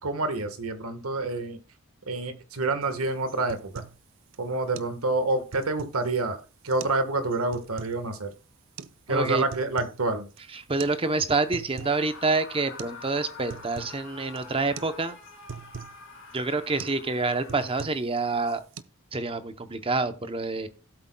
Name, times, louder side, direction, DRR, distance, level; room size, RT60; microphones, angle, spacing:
voice 1, 0.0-1.6 2.1-3.8 4.4-6.4 6.6-8.3 9.1-10.3, right 2 dB, 85° right, 8 dB, 1.4 m, -28 dB
sound 1, 2.8-3.0 3.3-4.0 4.3-4.4 4.8-5.0 5.3-6.1 6.7-7.0 7.3-8.0 8.8-8.9 9.3-10.0 10.3-10.4 10.8-11.0 11.3-12.0 12.4-12.5 12.8-13.0 13.3-14.0 14.4-14.5 14.8-15.0 15.2-16.0 16.4-16.5 16.8-17.0 17.3-18.1 18.4-18.8, right 6 dB, 60° right, 0.5 m, -42 dB
voice 2, 9.1-9.4 10.5-15.2 16.3-18.6 19.1-20.7, right 3 dB, 25° right, 10 dB, 0.7 m, -27 dB
Screaming, 11.8-18.0, left 4 dB, 60° left, 2.0 m, -46 dB
17.0 x 8.0 x 2.3 m, 0.34 s
head